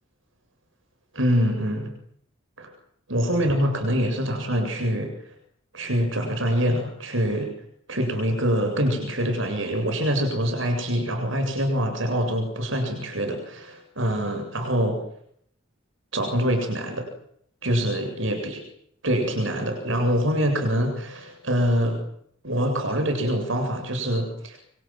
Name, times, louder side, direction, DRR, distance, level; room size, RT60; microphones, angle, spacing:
voice 1, 1.1-1.9 2.6-2.7 3.1-5.1 5.7-7.5 7.9-15.0 16.1-17.1 17.6-18.6 19.0-22.0 22.4-24.6, equal, 70° right, 5 dB, 7.8 m, -25 dB
28.5 x 25.0 x 7.7 m, 0.69 s
head